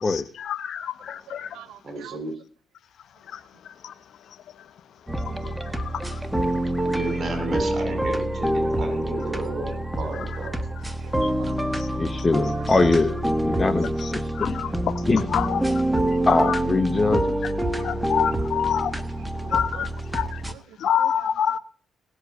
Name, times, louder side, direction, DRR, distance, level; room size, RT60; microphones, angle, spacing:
voice 1, 0.1-1.5 3.3-3.4 3.8-3.9 14.4-14.7 15.3-15.6 17.8-18.9 19.5-20.4 20.8-21.6, left 8 dB, 70° left, 0.9 m, -26 dB
voice 2, 1.3-2.2 5.3-5.6 6.5-6.7 11.0-11.1 11.4-11.6 14.4-14.8 15.9-16.2 17.7-18.5 19.2-19.8 20.5-20.6 21.0-21.3, right 12 dB, 90° right, 0.8 m, -44 dB
voice 3, 1.8-2.3 6.8-10.5 15.4-15.6, right 2 dB, 40° right, 6.8 m, -33 dB
sound 1, 5.1-20.5, right 1 dB, 5° right, 1.4 m, -26 dB
voice 4, 11.9-14.6 15.0-15.3 16.3-17.4, left 3 dB, 25° left, 1.3 m, -23 dB
18.5 x 7.9 x 8.2 m
cardioid pair, 90°, 0 cm